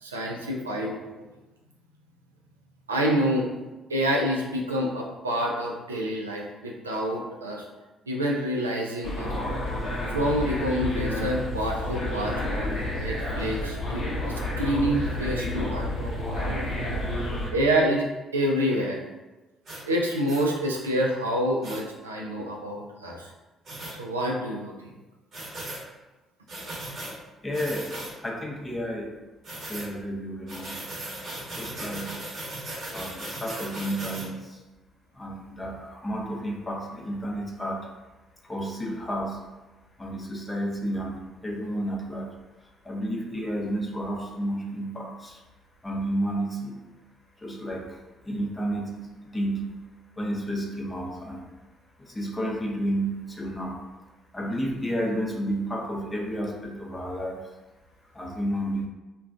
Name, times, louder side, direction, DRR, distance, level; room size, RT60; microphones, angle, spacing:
voice 1, 0.0-1.2 2.9-3.5 3.9-7.6 8.1-9.3 10.1-14.1 14.6-16.1 16.4-16.7 17.5-19.0 19.8-23.3 24.0-24.7, equal, 85° right, -1 dB, 0.3 m, -27 dB
sound 1, 9.0-17.5, left 1 dB, 60° left, 0.7 m, -30 dB
sound 2, 19.6-19.8 20.3-20.4 21.6-21.8 23.6-23.9 25.3-25.8 26.5-27.1 27.5-28.1 29.4-29.9 30.5-34.3, right 1 dB, 50° right, 0.9 m, -37 dB
voice 2, 27.4-29.1 29.7-30.8 31.6-32.2 32.9-34.6 35.2-37.9 38.4-39.4 40.0-42.3 42.8-45.4 45.8-46.8 47.4-48.0 48.3-49.8 50.2-51.5 52.0-53.8 54.3-57.4 58.1-58.9, equal, 20° left, 0 dB, 0.6 m, -31 dB
2.3 x 2.2 x 3.5 m, 1.1 s
figure-of-eight pair, 45°, 0 cm